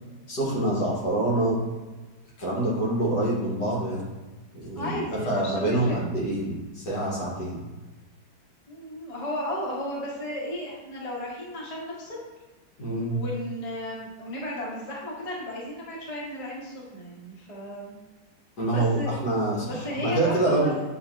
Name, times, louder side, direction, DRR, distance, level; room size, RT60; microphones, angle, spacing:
voice 1, 0.3-1.6 2.4-4.1 4.5-7.6 12.8-13.2 18.6-20.8, right 1 dB, 60° left, -4 dB, 1.7 m, -26 dB
voice 2, 4.7-6.0 8.7-12.2 13.1-17.9 18.7-19.3 19.6-20.8, left 1 dB, 25° left, -5 dB, 0.8 m, -34 dB
7.6 x 2.7 x 2.5 m, 1.2 s
omnidirectional pair, 2.1 m